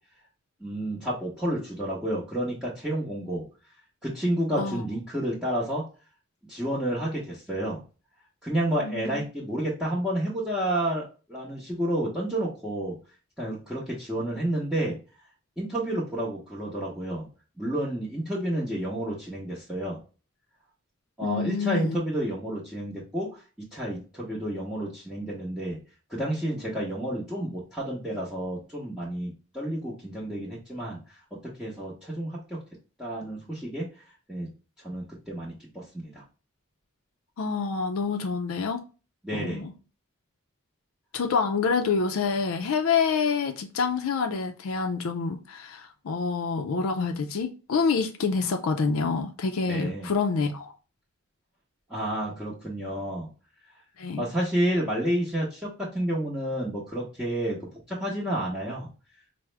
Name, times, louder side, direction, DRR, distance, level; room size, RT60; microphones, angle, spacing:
voice 1, 0.6-3.4 4.0-5.8 6.5-7.8 8.4-13.0 13.4-15.0 15.6-17.3 17.6-20.0 21.2-23.4 23.7-25.8 26.1-31.0 31.4-32.6 33.0-33.9 34.3-34.5 34.8-36.2 39.2-39.6 49.7-50.1 51.9-53.3 54.2-58.9, right 1 dB, 5° right, 0.8 m, -30 dB
voice 2, 8.8-9.2 21.2-22.0 37.4-38.8 39.3-39.7 41.1-50.7 54.0-54.2, left 5 dB, 70° left, 0.4 m, -27 dB
4.7 x 2.1 x 3.2 m
head